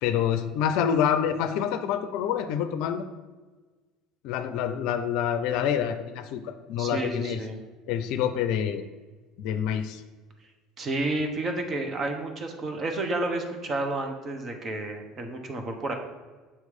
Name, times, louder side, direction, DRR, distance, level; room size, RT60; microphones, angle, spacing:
voice 1, 0.0-3.0 4.2-7.4 7.9-8.8 9.4-10.0, left 8 dB, 65° left, 9 dB, 0.4 m, -27 dB
voice 2, 6.8-7.6 10.8-15.9, right 2 dB, 40° right, 4 dB, 1.1 m, -30 dB
7.0 x 3.1 x 5.3 m, 1.3 s
hypercardioid pair, 70°, 0 cm